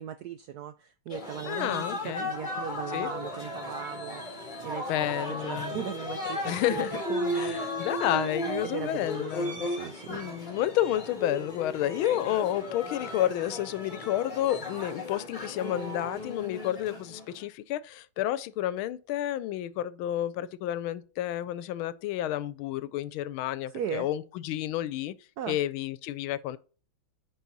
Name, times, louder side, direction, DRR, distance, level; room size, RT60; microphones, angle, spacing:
voice 1, 0.0-7.9 8.6-10.4 23.7-24.1 25.4-25.6, right 9 dB, 85° right, 0.8 m, -38 dB
sound 1, 1.1-17.4, left 2 dB, 25° left, 1.9 m, -35 dB
voice 2, 1.5-2.3 2.9-3.1 4.9-5.8 6.4-7.0 7.3-9.6 10.1-25.1 25.5-26.6, left 12 dB, 90° left, 1.4 m, -30 dB
10.5 x 4.4 x 4.0 m
omnidirectional pair, 2.2 m